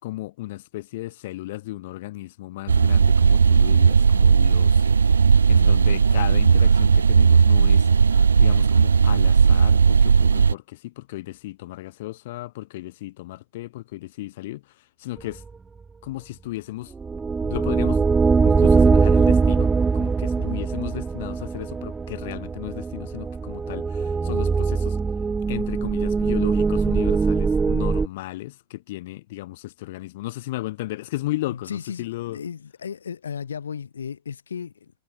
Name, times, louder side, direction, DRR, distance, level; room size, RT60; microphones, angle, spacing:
voice 1, 0.0-4.9 5.1-15.4 16.0-16.9 17.4-18.0 18.4-25.0 25.5-32.4, left 17 dB, 55° left, 7.0 m, -35 dB
sound 1, 2.7-10.5, right 6 dB, 75° right, 0.9 m, -16 dB
voice 2, 5.6-6.0 20.4-20.6 31.5-34.9, left 7 dB, 70° left, 7.5 m, -35 dB
sound 2, 17.0-28.1, right 4 dB, 15° right, 1.3 m, -21 dB
figure-of-eight pair, 90°, 0 cm